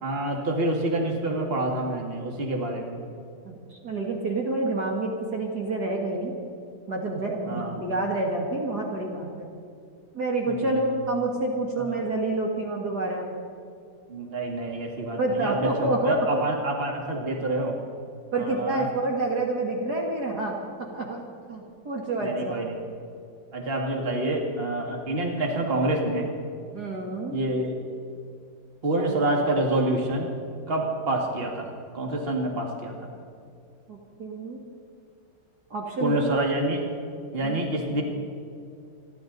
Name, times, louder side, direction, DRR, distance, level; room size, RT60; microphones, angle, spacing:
voice 1, 0.0-3.0 7.5-7.7 10.5-10.8 11.8-11.9 14.1-17.8 18.4-18.9 22.2-22.8 23.5-26.3 27.3-27.7 28.8-30.3 30.7-32.9 36.0-36.9 37.3-38.0, right 1 dB, 30° right, 1 dB, 2.1 m, -27 dB
voice 2, 3.5-6.3 6.9-9.5 10.1-13.3 15.2-16.3 18.3-21.2 21.5-22.6 26.7-27.4 33.9-34.6 35.7-36.2 37.4-37.7, right 2 dB, 50° right, -1 dB, 2.2 m, -28 dB
28.5 x 11.5 x 4.0 m, 2.5 s
omnidirectional pair, 2.3 m